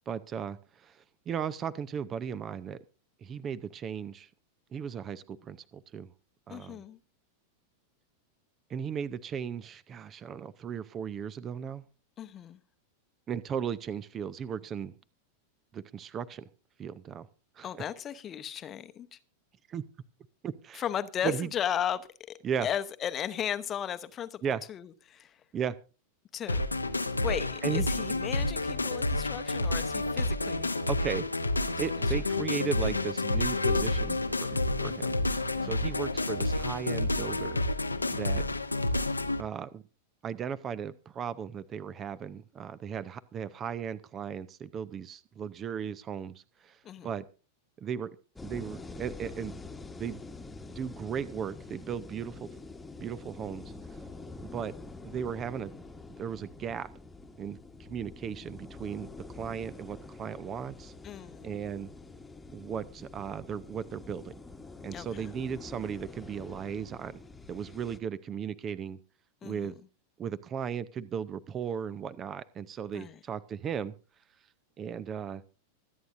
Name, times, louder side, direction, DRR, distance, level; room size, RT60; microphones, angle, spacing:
voice 1, 0.1-2.8 3.2-4.3 4.7-6.1 6.5-6.8 8.7-11.8 13.3-14.9 15.7-16.5 16.8-17.3 17.6-17.8 19.7-19.8 20.4-20.8 21.2-21.5 22.4-22.7 24.4-24.6 25.5-25.8 27.6-27.9 30.9-31.3 31.8-34.2 34.5-35.2 35.6-37.6 38.1-38.4 39.4-39.8 40.2-46.8 47.0-47.3 47.8-48.2 48.4-49.6 50.0-50.2 50.8-52.5 53.0-53.7 54.4-54.7 55.0-55.7 56.2-56.9 57.4-59.1 59.3-60.9 61.4-61.9 62.5-64.3 64.8-67.2 67.5-69.0 69.4-69.8 70.2-73.9 74.8-75.4, right 7 dB, 25° right, 0.6 m, -36 dB
voice 2, 6.5-7.0 12.2-12.6 17.6-19.2 20.7-22.0 22.3-24.4 24.7-25.3 26.3-26.6 27.2-30.7 31.8-31.9 35.6-35.9 46.8-47.1 61.0-61.5 64.9-65.3 69.4-69.7 72.9-73.2, left 9 dB, 25° left, 0.9 m, -36 dB
sound 1, 26.5-39.4, left 2 dB, 80° left, 0.9 m, -29 dB
sound 2, 48.4-68.0, left 3 dB, 10° left, 1.3 m, -46 dB
25.0 x 9.2 x 2.6 m
figure-of-eight pair, 90°, 0 cm